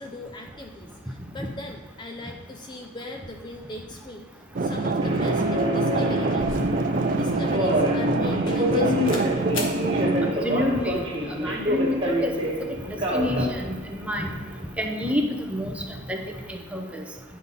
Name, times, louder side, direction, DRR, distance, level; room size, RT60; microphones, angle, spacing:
voice 1, 0.0-6.5 7.1-9.5, left 1 dB, 25° left, 2 dB, 0.5 m, -39 dB
sound 1, 4.6-10.3, right 2 dB, 45° right, 0.4 m, -25 dB
Subway metro underground, 5.0-14.7, equal, 30° right, 1.4 m, -28 dB
sound 2, 6.4-8.7 9.0-9.3 9.5-9.8, left 3 dB, 75° left, 1.2 m, -37 dB
voice 2, 10.2-11.0 11.4-12.3 12.9-14.3 14.8-16.2 16.5-17.0, left 1 dB, 5° right, 2 dB, 0.8 m, -28 dB
9.8 x 5.4 x 4.0 m, 1.4 s
head